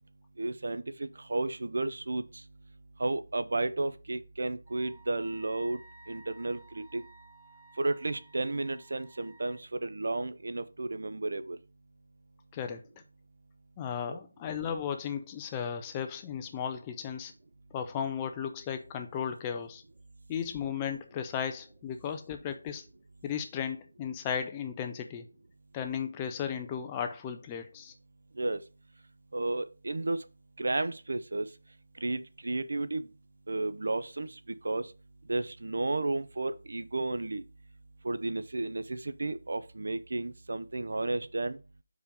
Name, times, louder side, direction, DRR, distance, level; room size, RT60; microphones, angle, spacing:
voice 1, 0.4-2.2 3.0-5.8 6.1-7.0 7.8-11.6 14.1-14.2 28.4-28.6 29.3-30.2 30.6-31.5 32.0-33.1 33.5-34.4 34.6-34.9 35.3-37.4 38.0-41.6, right 2 dB, 65° right, 0.6 m, -32 dB
Wind instrument woodwind instrument, 4.7-9.6, right 2 dB, 5° right, 1.6 m, -57 dB
voice 2, 13.8-17.3 17.7-19.8 20.3-22.9 23.2-25.3 25.7-27.9, left 8 dB, 15° left, 0.4 m, -35 dB
5.0 x 4.9 x 5.3 m
figure-of-eight pair, 175°, 0 cm